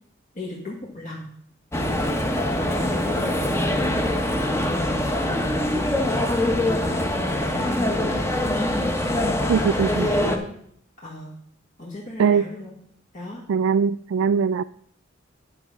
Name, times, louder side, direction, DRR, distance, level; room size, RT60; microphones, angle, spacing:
voice 1, 0.3-1.3 2.7-4.1 4.4-8.7 9.4-10.5 11.0-11.3 11.8-12.7 13.1-13.4, left 1 dB, 45° left, -4 dB, 1.6 m, -35 dB
sound 1, 1.7-10.4, left 1 dB, 15° left, 0.9 m, -23 dB
voice 2, 9.5-10.1 12.2-12.4 13.5-14.6, right 6 dB, 85° right, 12 dB, 0.3 m, -21 dB
9.8 x 5.6 x 6.1 m, 0.66 s
head